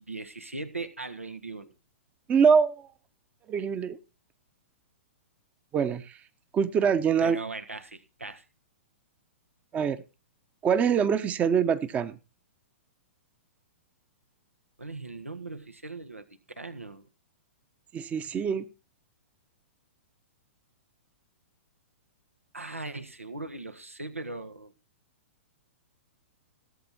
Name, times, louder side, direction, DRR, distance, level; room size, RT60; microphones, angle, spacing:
voice 1, 0.0-1.7 7.2-8.4 14.8-17.1 22.5-24.7, right 3 dB, 90° right, 7 dB, 1.5 m, -39 dB
voice 2, 2.3-2.9 3.5-4.0 5.7-6.2 6.5-7.4 9.7-10.0 10.6-12.1 17.9-18.7, right 6 dB, 20° right, 12 dB, 0.9 m, -24 dB
17.5 x 7.7 x 4.3 m, 0.31 s
figure-of-eight pair, 110°, 7 cm